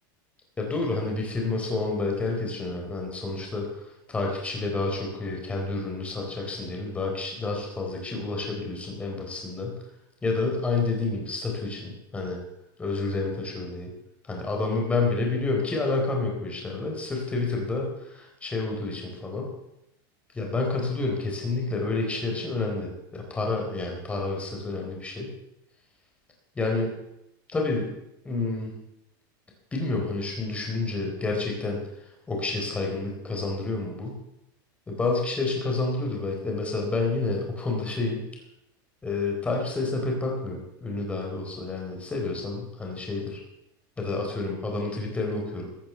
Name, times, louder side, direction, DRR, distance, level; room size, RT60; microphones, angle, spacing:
voice 1, 0.6-3.7 4.1-9.8 10.2-12.4 12.8-13.9 14.2-19.5 20.3-25.3 26.6-26.9 27.5-27.9 28.2-28.7 29.7-31.8 32.3-34.2 34.9-38.2 39.0-43.4 44.0-45.7, left 3 dB, 10° left, 0 dB, 3.9 m, -29 dB
16.0 x 8.7 x 7.0 m, 0.84 s
supercardioid pair, 155°, 11 cm